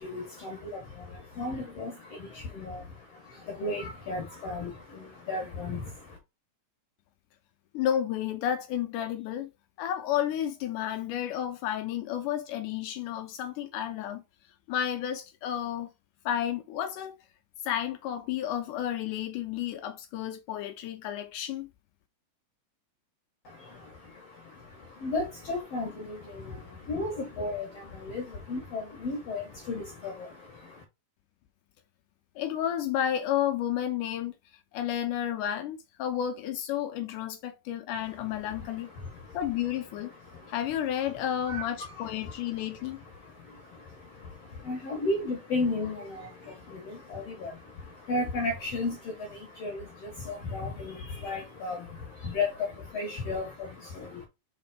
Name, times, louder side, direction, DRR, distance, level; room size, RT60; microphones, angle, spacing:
voice 1, 0.0-6.2 23.4-30.8 39.0-39.4 40.2-40.5 41.5-41.7 42.2-42.3 43.2-54.2, left 2 dB, 55° left, 2.0 m, -35 dB
voice 2, 7.7-9.5 9.8-14.2 14.7-15.9 16.3-17.2 17.6-21.7 32.4-34.3 34.7-38.9 39.3-40.1 40.5-43.0, left 10 dB, 80° left, 1.9 m, -31 dB
5.1 x 4.0 x 4.8 m
omnidirectional pair, 4.0 m